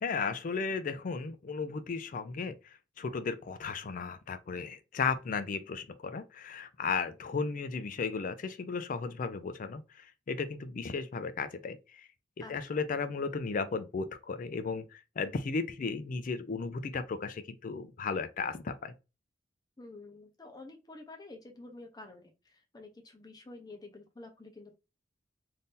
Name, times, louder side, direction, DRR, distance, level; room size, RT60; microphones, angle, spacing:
voice 1, 0.0-2.6 3.0-12.1 12.5-18.9, left 5 dB, 45° left, 0.4 m, -35 dB
voice 2, 12.4-12.8 19.8-24.7, left 2 dB, 20° left, 0.7 m, -49 dB
2.7 x 2.6 x 3.6 m
head